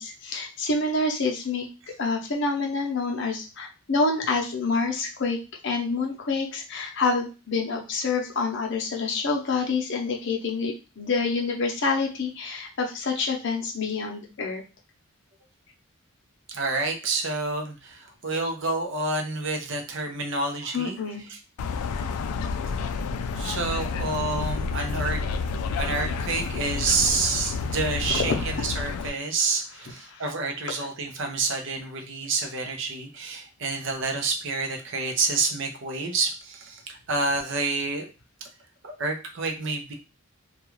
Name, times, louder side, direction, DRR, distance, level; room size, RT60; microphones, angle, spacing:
voice 1, 0.0-1.7 2.0-5.4 5.6-14.6 20.7-21.3 28.1-28.4 30.1-30.2, left 3 dB, 55° left, 1 dB, 0.6 m, -27 dB
voice 2, 16.5-21.0 21.3-21.4 23.4-25.2 25.8-38.1 38.8-39.9, right 3 dB, 55° right, 3 dB, 0.6 m, -28 dB
sound 1, 21.6-29.1, left 4 dB, 85° left, 0.3 m, -30 dB
2.3 x 2.3 x 3.0 m, 0.31 s
head